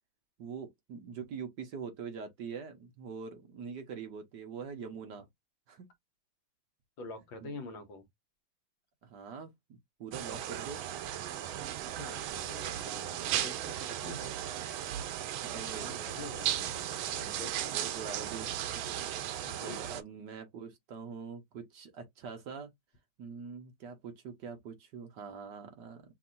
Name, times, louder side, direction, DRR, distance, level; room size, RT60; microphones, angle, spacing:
voice 1, 0.4-5.3 5.7-5.9 7.4-7.5 9.0-10.8 15.3-16.3 17.3-17.4 17.7-18.8 19.6-22.7 23.2-26.1, right 6 dB, 60° right, 1.5 m, -44 dB
voice 2, 7.0-8.1 12.0-14.4 15.5-17.9 19.5-19.8, left 3 dB, 70° left, 1.7 m, -47 dB
sound 1, 10.1-20.0, right 11 dB, 80° right, 1.5 m, -36 dB
5.9 x 2.7 x 2.5 m
omnidirectional pair, 2.2 m